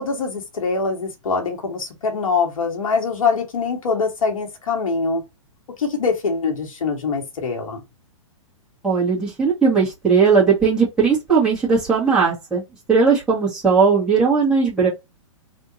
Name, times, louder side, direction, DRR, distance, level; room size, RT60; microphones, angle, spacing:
voice 1, 0.0-5.2 5.8-7.8, left 4 dB, 90° left, 1.6 m, -23 dB
voice 2, 8.8-12.6 12.9-14.9, right 5 dB, 5° right, 1.5 m, -17 dB
3.6 x 2.6 x 2.8 m
hypercardioid pair, 140°, 17 cm